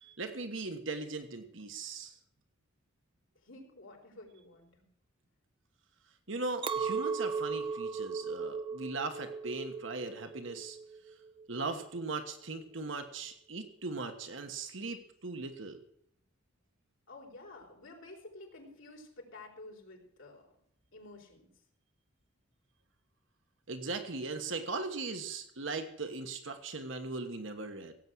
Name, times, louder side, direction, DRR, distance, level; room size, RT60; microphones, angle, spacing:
voice 1, 0.0-2.2 6.3-10.8 11.5-15.8 23.7-27.9, right 3 dB, 70° right, 7 dB, 1.4 m, -39 dB
voice 2, 3.4-4.9 17.1-20.5 20.9-21.5, left 2 dB, 80° left, -1 dB, 4.5 m, -51 dB
Chink clink, 6.6-12.0, right 5 dB, 25° right, 0.6 m, -37 dB
17.0 x 8.3 x 6.3 m, 0.72 s
head